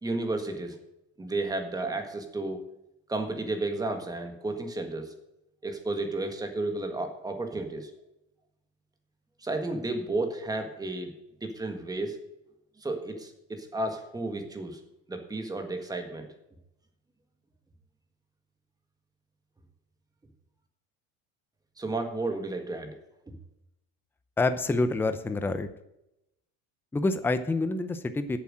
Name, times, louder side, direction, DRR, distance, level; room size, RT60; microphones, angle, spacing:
voice 1, 0.0-0.8 1.2-2.6 3.1-5.1 5.6-7.9 9.4-11.1 11.4-12.2 12.8-14.8 15.1-16.3 21.8-23.0 23.3-23.4, right 2 dB, 10° right, 5 dB, 1.6 m, -32 dB
voice 2, 24.4-25.7 26.9-28.4, left 2 dB, 5° left, 10 dB, 0.6 m, -27 dB
8.3 x 7.5 x 6.2 m, 0.86 s
supercardioid pair, 135°, 35 cm